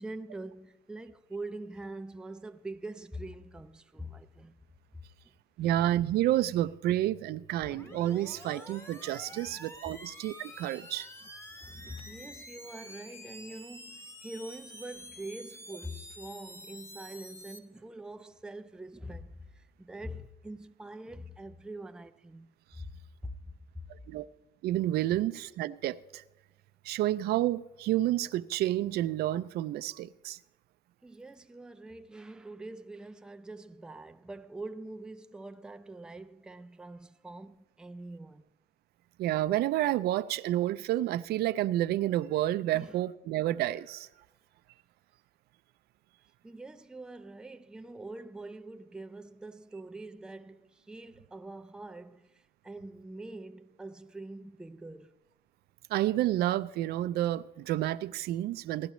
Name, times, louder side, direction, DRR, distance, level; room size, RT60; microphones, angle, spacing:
voice 1, 0.0-4.6 9.3-9.6 11.6-22.5 22.8-22.9 23.2-23.8 31.0-38.4 42.7-43.0 46.4-55.2, right 1 dB, 5° right, 0.4 m, -44 dB
voice 2, 5.6-11.1 24.1-24.3 24.6-26.2 26.8-30.4 39.2-44.1 55.9-58.9, right 14 dB, 70° right, 0.4 m, -30 dB
sound 1, 7.6-17.6, left 1 dB, 15° left, 1.0 m, -48 dB
16.5 x 11.5 x 3.0 m
cardioid pair, 110°, 17 cm